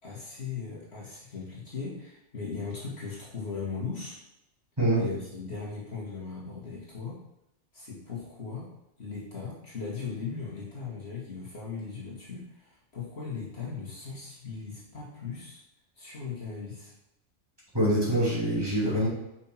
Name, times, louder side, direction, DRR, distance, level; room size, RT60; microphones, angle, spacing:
voice 1, 0.0-4.2 4.9-7.2 7.7-8.7 9.0-15.6 16.0-16.9, left 5 dB, 55° left, -5 dB, 2.3 m, -38 dB
voice 2, 17.7-19.1, right 1 dB, 20° right, -8 dB, 3.0 m, -25 dB
6.0 x 5.9 x 4.5 m, 0.88 s
omnidirectional pair, 1.4 m